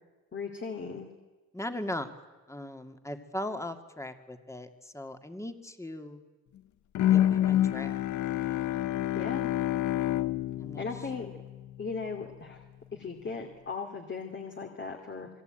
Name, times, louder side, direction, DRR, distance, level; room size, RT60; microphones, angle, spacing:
voice 1, 0.3-1.1 9.1-9.5 10.8-11.3 11.8-12.6 12.9-15.3, left 4 dB, 40° left, 3 dB, 2.8 m, -37 dB
voice 2, 1.5-2.1 2.5-6.2 7.1-8.0 10.6-10.8, left 1 dB, 10° left, 7 dB, 2.3 m, -38 dB
Bowed string instrument, 6.9-12.0, left 12 dB, 70° left, 1.1 m, -28 dB
28.0 x 21.5 x 9.1 m, 1.2 s
cardioid pair, 90°, 30 cm